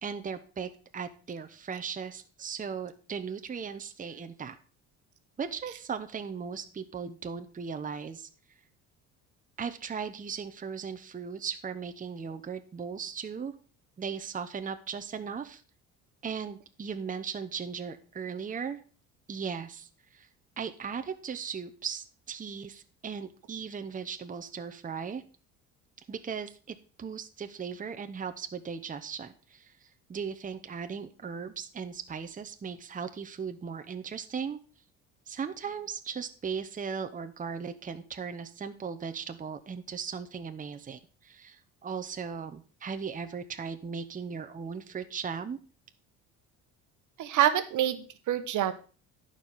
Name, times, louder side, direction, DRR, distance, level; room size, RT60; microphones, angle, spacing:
voice 1, 0.0-4.5 5.4-8.3 9.6-13.5 14.0-15.6 16.2-18.8 19.3-20.3 20.6-25.2 26.1-34.6 35.3-45.6, right 6 dB, 25° right, 8 dB, 0.9 m, -37 dB
voice 2, 47.2-48.7, right 11 dB, 65° right, 10 dB, 1.2 m, -26 dB
11.5 x 5.0 x 5.6 m, 0.38 s
supercardioid pair, 90°, 33 cm